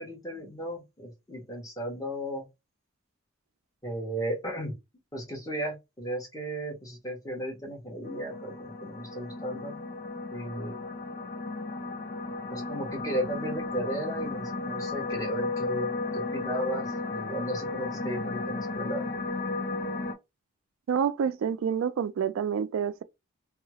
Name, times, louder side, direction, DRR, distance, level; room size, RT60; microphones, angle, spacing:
voice 1, 0.0-2.4 3.8-4.7 5.1-9.8 10.3-10.8 12.5-19.1, right 1 dB, 15° left, 1.2 m, -35 dB
sound 1, 8.0-20.1, left 3 dB, 45° left, 0.5 m, -34 dB
voice 2, 20.9-23.0, right 7 dB, 75° right, 0.3 m, -28 dB
2.8 x 2.3 x 2.9 m
head